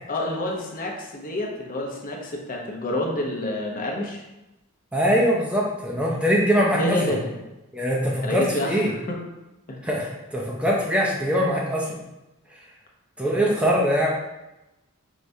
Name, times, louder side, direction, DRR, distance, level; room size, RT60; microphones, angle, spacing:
voice 1, 0.1-4.2 6.7-7.3 8.2-8.7 9.1-9.2 9.7-9.8 13.4-13.5, left 1 dB, 40° left, 0 dB, 0.7 m, -28 dB
voice 2, 4.9-7.0 7.7-8.9 9.8-12.0 13.2-14.1, equal, 5° right, -3 dB, 0.5 m, -22 dB
4.8 x 3.3 x 2.7 m, 0.96 s
head